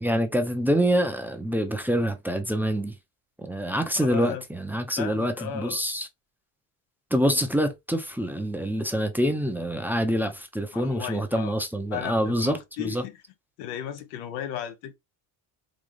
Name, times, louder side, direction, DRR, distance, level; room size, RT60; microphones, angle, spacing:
voice 1, 0.0-2.9 3.4-6.1 7.1-13.0, equal, 5° right, 0.6 m, -26 dB
voice 2, 3.9-4.4 5.0-5.8 10.7-11.5 11.9-13.2 13.6-15.0, left 10 dB, 85° left, 0.8 m, -35 dB
3.9 x 2.3 x 3.1 m
supercardioid pair, 90°, 47 cm